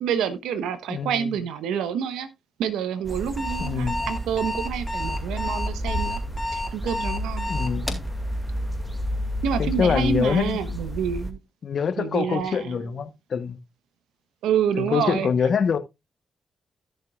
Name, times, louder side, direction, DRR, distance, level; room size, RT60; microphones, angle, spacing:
voice 1, 0.0-2.3 2.6-6.2 6.5-7.5 9.4-11.4 12.0-12.9 14.4-15.3, right 8 dB, 85° right, 1.0 m, -27 dB
voice 2, 0.9-1.4 3.6-4.1 5.6-5.7 7.5-8.0 9.6-10.6 11.6-13.6 14.8-15.8, left 6 dB, 65° left, 1.1 m, -25 dB
sound 1, 3.0-11.3, equal, 10° right, 2.2 m, -30 dB
Alarm, 3.2-8.1, left 2 dB, 20° left, 3.3 m, -31 dB
16.0 x 6.7 x 2.4 m
supercardioid pair, 45°, 0 cm